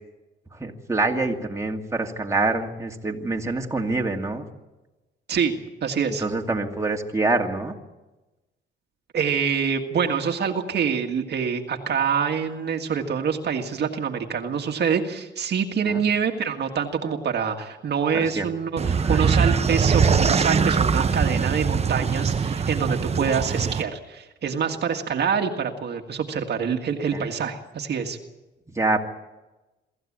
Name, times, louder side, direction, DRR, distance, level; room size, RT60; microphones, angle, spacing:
voice 1, 0.5-4.4 6.2-7.7 15.8-16.0 18.1-18.4 19.0-19.3 27.1-27.3 28.7-29.0, right 3 dB, 15° right, 2 dB, 2.4 m, -26 dB
voice 2, 5.8-6.2 9.1-28.2, right 6 dB, 55° right, 4 dB, 1.8 m, -26 dB
sound 1, 18.8-23.8, right 6 dB, 30° right, 0.9 m, -22 dB
24.0 x 14.5 x 8.7 m, 1.1 s
cardioid pair, 90°, 20 cm